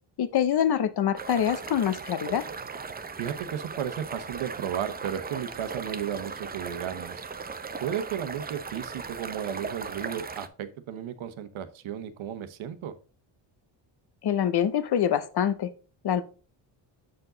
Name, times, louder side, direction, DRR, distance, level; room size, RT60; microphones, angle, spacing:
voice 1, 0.2-2.4 14.2-15.7 16.0-16.2, left 9 dB, 50° left, 0.8 m, -25 dB
sound 1, 1.2-10.5, right 5 dB, 20° right, 0.6 m, -38 dB
voice 2, 3.2-7.2 7.8-12.9, right 9 dB, 70° right, 1.0 m, -34 dB
7.6 x 4.7 x 3.8 m
cardioid pair, 85°, 49 cm